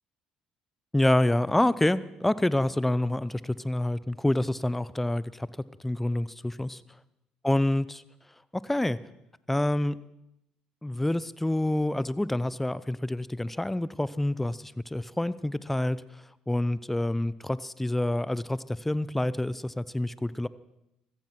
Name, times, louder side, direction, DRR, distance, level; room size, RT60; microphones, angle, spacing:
voice 1, 0.9-5.5 5.8-6.8 7.4-8.0 8.5-9.0 9.5-10.0 10.8-16.0 16.5-20.5, left 1 dB, 10° left, 17 dB, 0.7 m, -27 dB
15.5 x 14.5 x 6.0 m, 0.85 s
hypercardioid pair, 70°, 2 cm